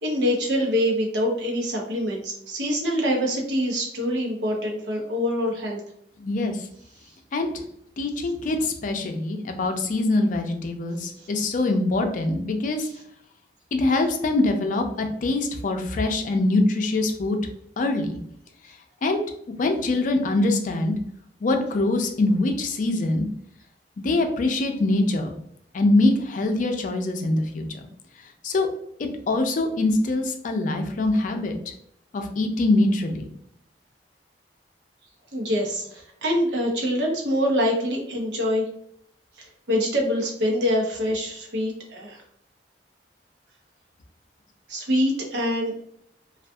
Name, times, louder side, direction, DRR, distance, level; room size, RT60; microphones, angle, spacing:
voice 1, 0.0-5.8 35.3-38.6 39.7-42.2 44.7-45.7, equal, 90° right, -1 dB, 0.7 m, -25 dB
voice 2, 6.2-6.7 7.3-7.5 8.0-12.9 13.7-17.4 17.8-18.2 19.0-19.2 19.6-20.9 21.4-23.3 24.0-25.3 25.7-27.8 28.4-28.7 29.0-31.6 32.1-33.3, left 2 dB, 45° left, 5 dB, 0.4 m, -23 dB
2.6 x 2.3 x 2.2 m, 0.70 s
head